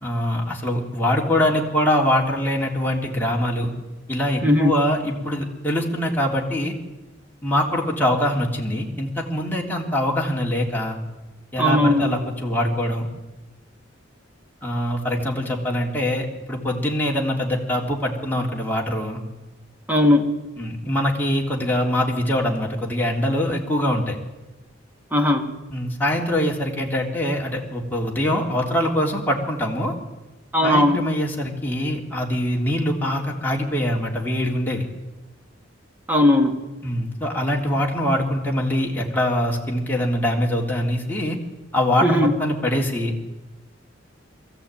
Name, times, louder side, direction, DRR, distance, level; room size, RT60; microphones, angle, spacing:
voice 1, 0.0-3.7 4.1-6.7 7.4-11.0 11.5-13.1 14.6-19.2 20.6-24.2 25.7-29.9 30.6-34.8 36.8-41.4 41.7-43.1, left 1 dB, 10° left, -2 dB, 3.3 m, -23 dB
voice 2, 11.6-12.1 19.9-20.3 25.1-25.5 30.5-31.1 36.1-36.6 42.0-42.3, left 1 dB, 10° right, 3 dB, 2.3 m, -18 dB
22.5 x 14.5 x 9.1 m, 1.1 s
head